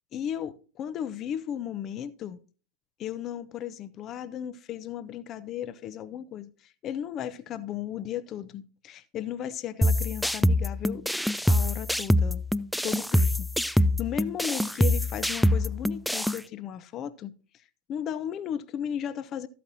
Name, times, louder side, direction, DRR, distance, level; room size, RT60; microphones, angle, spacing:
voice 1, 0.1-2.4 3.0-11.1 11.5-12.5 12.8-17.3 17.9-19.5, left 10 dB, 30° left, 0.7 m, -35 dB
sound 1, 9.8-16.4, left 1 dB, ahead, 0.3 m, -25 dB
13.5 x 8.5 x 2.7 m
figure-of-eight pair, 90°, 0 cm